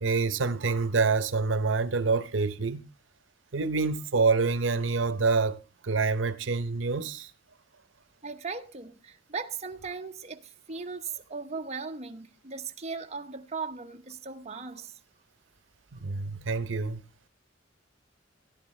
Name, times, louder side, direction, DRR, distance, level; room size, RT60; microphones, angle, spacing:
voice 1, 0.0-2.8 3.5-5.6 5.8-7.3 15.9-17.0, right 4 dB, 80° right, 0.8 m, -26 dB
voice 2, 8.2-15.0, right 4 dB, 35° right, 0.9 m, -38 dB
17.0 x 11.0 x 3.2 m
head